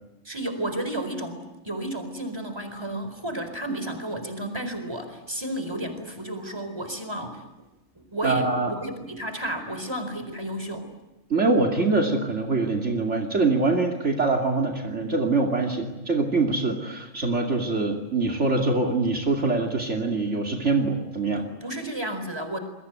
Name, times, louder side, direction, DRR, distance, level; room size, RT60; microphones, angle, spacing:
voice 1, 0.2-7.7 8.0-10.9 21.3-22.6, right 1 dB, 20° right, 8 dB, 4.4 m, -32 dB
voice 2, 8.2-8.7 11.3-21.4, right 3 dB, 60° right, 1 dB, 2.9 m, -24 dB
27.5 x 22.5 x 9.3 m, 1.0 s
omnidirectional pair, 1.4 m